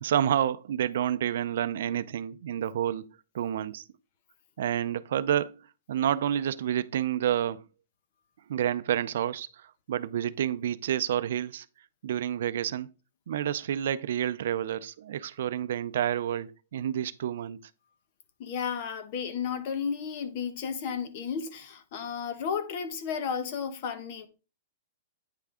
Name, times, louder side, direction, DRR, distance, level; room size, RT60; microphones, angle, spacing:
voice 1, 0.0-3.1 3.3-3.8 4.6-5.6 5.9-7.6 8.5-11.7 12.0-12.9 13.3-17.6, right 10 dB, 65° right, 0.4 m, -29 dB
voice 2, 18.4-24.3, left 6 dB, 45° left, 1.1 m, -33 dB
9.1 x 3.4 x 4.9 m
hypercardioid pair, 155°, 0 cm